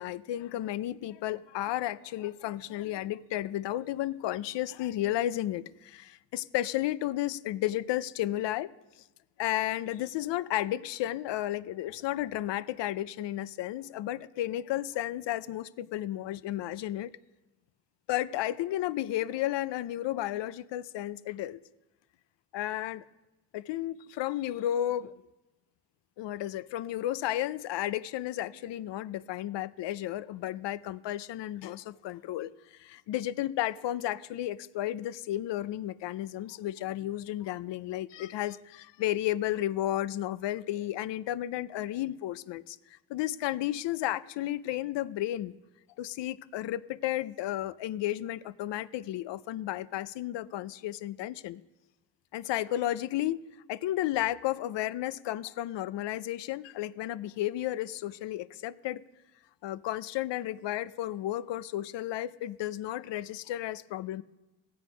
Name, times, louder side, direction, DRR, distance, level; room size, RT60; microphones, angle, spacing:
voice 1, 0.0-8.7 9.4-17.1 18.1-21.6 22.5-23.0 23.5-25.1 26.2-42.8 43.1-45.6 46.0-51.6 52.3-53.4 53.7-59.0 59.6-64.2, left 13 dB, 65° left, 0.5 m, -33 dB
15.5 x 7.8 x 5.0 m
cardioid pair, 140°, 46 cm